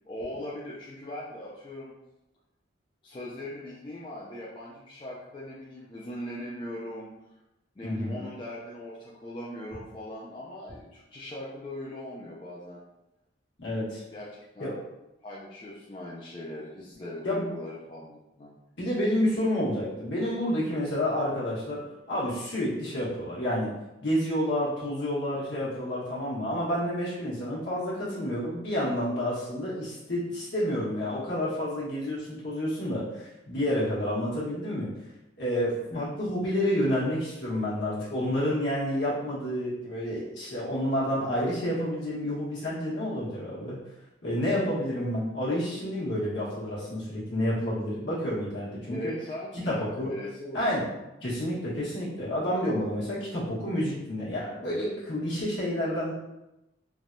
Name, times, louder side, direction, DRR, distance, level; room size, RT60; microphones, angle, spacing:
voice 1, 0.1-1.9 3.0-7.1 7.8-12.8 14.1-14.8 15.2-18.5 35.9-36.2 48.9-51.1 53.6-53.7, left 1 dB, 25° left, -6 dB, 0.3 m, -40 dB
voice 2, 7.8-8.2 13.6-14.0 14.6-14.7 17.2-17.5 18.8-21.8 22.1-23.7 24.0-34.9 35.4-43.8 44.2-49.1 49.6-50.1 50.5-50.8 51.2-56.1, equal, 65° left, -8 dB, 1.2 m, -29 dB
3.3 x 2.2 x 2.5 m, 0.92 s
head